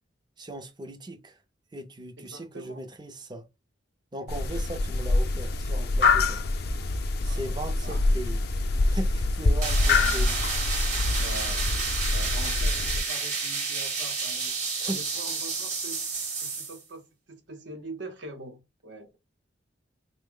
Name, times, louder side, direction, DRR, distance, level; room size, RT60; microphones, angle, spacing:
voice 1, 0.4-1.4 1.7-3.5 4.1-6.5 7.2-8.4 8.9-10.4 14.8-15.0, right 1 dB, 25° right, 0.6 m, -38 dB
voice 2, 2.2-2.9 7.3-8.1 9.9-10.4 11.2-11.8 12.1-14.6 14.9-16.0 16.4-19.2, right 1 dB, 70° right, 0.8 m, -43 dB
sound 1, 4.3-13.0, left 3 dB, 55° left, 0.5 m, -25 dB
sound 2, 9.6-16.8, right 4 dB, 40° right, 1.1 m, -30 dB
3.5 x 2.1 x 3.7 m
head